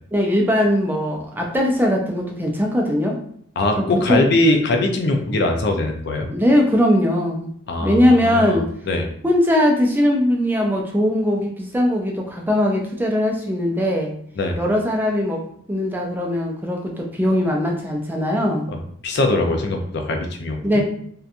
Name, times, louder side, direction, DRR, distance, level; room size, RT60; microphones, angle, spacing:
voice 1, 0.1-3.1 3.8-4.2 6.3-7.5 7.8-8.7 9.2-14.1 14.6-15.4 15.7-18.7 20.6-20.8, left 1 dB, 10° right, 0 dB, 0.3 m, -20 dB
voice 2, 3.6-6.3 7.7-9.1 14.4-14.6 19.0-20.8, left 2 dB, 60° left, 3 dB, 0.4 m, -21 dB
2.8 x 2.2 x 2.5 m, 0.65 s
head